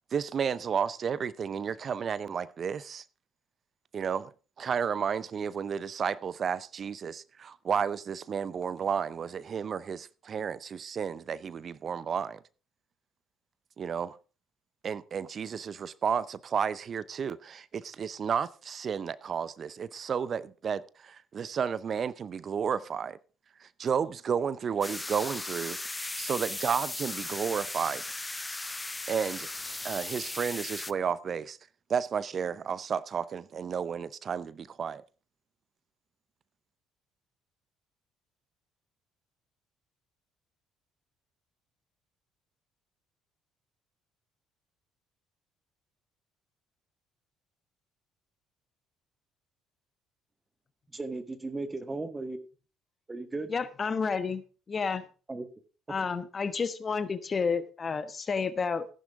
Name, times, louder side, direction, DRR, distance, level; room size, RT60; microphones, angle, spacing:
voice 1, 0.1-3.0 3.9-4.3 4.6-12.4 13.8-14.2 14.8-23.2 23.6-25.8 26.2-28.0 29.1-29.5 29.8-31.6 31.9-35.0, right 7 dB, 45° right, 0.7 m, -32 dB
sound 1, 24.8-30.9, left 2 dB, 15° left, 0.5 m, -37 dB
voice 2, 50.9-52.4 53.1-53.5 55.3-55.5, right 3 dB, 20° right, 1.9 m, -36 dB
voice 3, 53.5-55.0 55.9-58.9, left 5 dB, 35° left, 1.1 m, -30 dB
14.0 x 10.5 x 3.6 m
hypercardioid pair, 50°, 0 cm